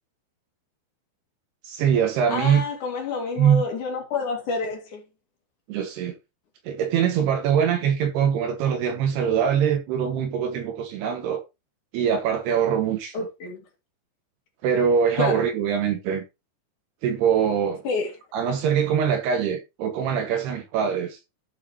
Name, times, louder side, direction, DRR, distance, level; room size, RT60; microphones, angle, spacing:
voice 1, 1.6-2.6 3.4-3.6 5.7-6.2 6.7-11.4 11.9-13.3 14.6-16.2 17.0-17.8 18.3-21.2, right 8 dB, 75° right, 2.6 m, -23 dB
voice 2, 2.3-5.0 13.1-13.6 15.2-15.5 17.8-18.1, left 4 dB, 50° left, 3.0 m, -28 dB
12.5 x 6.3 x 2.9 m
omnidirectional pair, 5.5 m